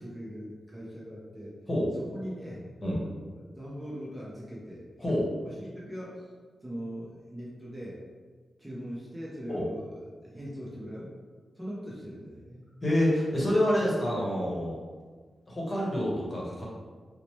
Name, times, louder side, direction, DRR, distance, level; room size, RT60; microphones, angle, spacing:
voice 1, 0.0-1.6 2.0-4.8 5.4-6.3 6.6-8.0 8.6-11.1 11.6-12.7, equal, 15° right, -6 dB, 0.7 m, -41 dB
voice 2, 5.0-5.3 9.5-9.6 12.8-14.8 15.5-16.6, left 1 dB, 30° left, -5 dB, 1.0 m, -27 dB
2.8 x 2.0 x 3.0 m, 1.5 s
cardioid pair, 75°, 0 cm